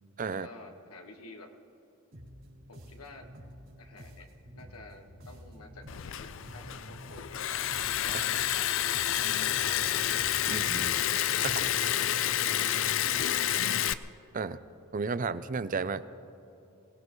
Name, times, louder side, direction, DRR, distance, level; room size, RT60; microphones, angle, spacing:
voice 1, 0.3-1.5 2.7-3.3 3.8-7.6 8.0-8.9 9.1-10.1 11.3-12.7 13.1-13.6 14.4-14.5, left 2 dB, 85° left, 4 dB, 1.5 m, -51 dB
sound 1, 2.1-12.0, equal, 60° right, 3.8 m, -49 dB
Liquid, 5.9-13.9, left 11 dB, 60° left, 0.4 m, -29 dB
voice 2, 10.5-11.0 11.4-11.6 14.3-14.6 14.9-16.0, right 4 dB, 35° right, 15 dB, 0.4 m, -33 dB
24.5 x 18.5 x 3.2 m, 2.9 s
head